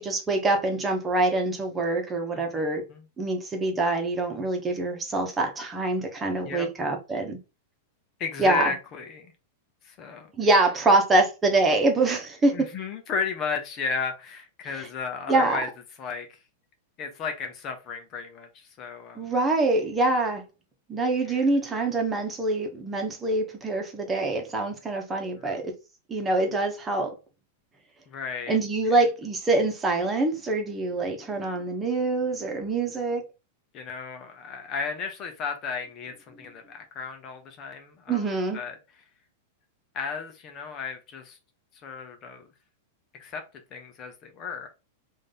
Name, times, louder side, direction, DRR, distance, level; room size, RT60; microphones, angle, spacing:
voice 1, 0.0-2.8 3.2-7.4 8.4-8.7 10.4-12.7 15.3-15.6 19.1-20.4 20.9-25.7 26.1-27.1 28.5-33.2 38.1-38.6, right 2 dB, 20° right, 1.3 m, -25 dB
voice 2, 2.3-3.0 6.4-6.7 8.2-9.3 9.8-10.3 12.5-15.7 16.0-16.4 17.0-19.3 21.3-21.5 25.3-25.6 28.1-28.6 33.7-38.3 38.5-38.7 39.9-41.4 41.8-42.5 43.1-43.4 43.7-44.7, left 5 dB, 35° left, 1.0 m, -34 dB
5.1 x 2.8 x 3.8 m
figure-of-eight pair, 95°, 0 cm